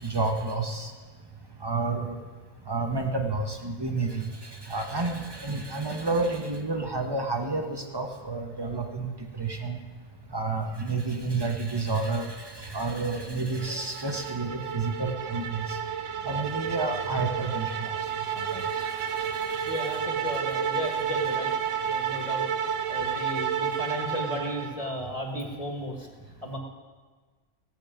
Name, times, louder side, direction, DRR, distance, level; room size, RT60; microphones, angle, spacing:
voice 1, 0.0-0.9 1.6-2.1 2.7-9.8 10.3-15.8 16.2-17.9 18.3-18.7 19.5-19.9, right 3 dB, 20° right, 3 dB, 1.1 m, -30 dB
sound 1, 13.6-24.9, right 8 dB, 75° right, 1.1 m, -31 dB
voice 2, 19.6-21.5 21.8-22.4 22.9-26.1 26.4-26.6, left 1 dB, 25° left, 1 dB, 1.7 m, -34 dB
18.0 x 8.1 x 5.1 m, 1.4 s
omnidirectional pair, 1.4 m